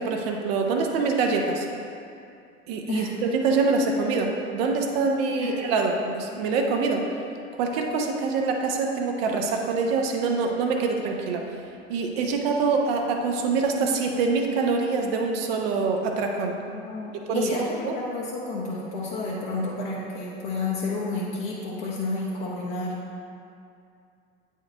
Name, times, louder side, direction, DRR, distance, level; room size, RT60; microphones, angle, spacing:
voice 1, 0.0-1.7 2.7-7.0 7.6-11.4 11.9-16.6 17.2-17.9, right 4 dB, 60° right, 2 dB, 0.9 m, -25 dB
voice 2, 16.7-22.9, left 3 dB, 55° left, -6 dB, 1.2 m, -30 dB
8.9 x 4.8 x 3.4 m, 2.5 s
figure-of-eight pair, 70°, 35 cm